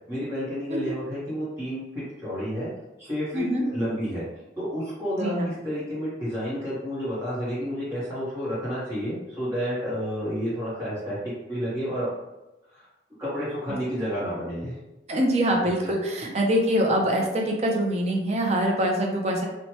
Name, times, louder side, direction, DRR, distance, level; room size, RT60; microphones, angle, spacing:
voice 1, 0.1-2.7 3.0-4.2 4.6-12.1 12.7-12.9 13.2-14.8 15.8-15.9, equal, 15° right, -10 dB, 0.9 m, -30 dB
voice 2, 5.2-5.5 15.1-19.5, equal, 35° right, 1 dB, 0.5 m, -24 dB
3.0 x 2.2 x 2.8 m, 1.0 s
head